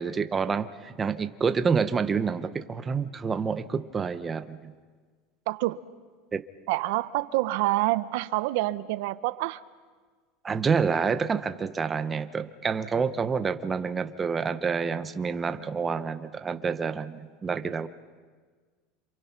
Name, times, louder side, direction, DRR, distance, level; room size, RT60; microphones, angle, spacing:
voice 1, 0.0-4.7 6.3-6.4 10.4-17.9, right 5 dB, 15° right, 10 dB, 0.8 m, -28 dB
voice 2, 5.5-5.8 6.7-9.6, right 18 dB, 70° right, 14 dB, 0.8 m, -27 dB
27.5 x 27.5 x 5.9 m, 1.5 s
supercardioid pair, 165°, 0 cm